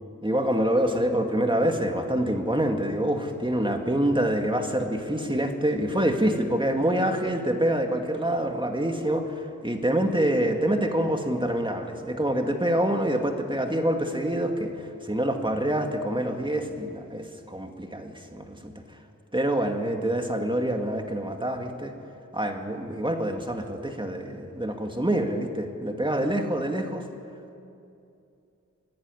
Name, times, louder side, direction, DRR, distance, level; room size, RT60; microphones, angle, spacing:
voice 1, 0.2-18.7 19.3-21.9 22.3-27.0, right 1 dB, 15° right, 4 dB, 2.2 m, -26 dB
25.0 x 11.0 x 9.8 m, 2.6 s
wide cardioid pair, 65°, 31 cm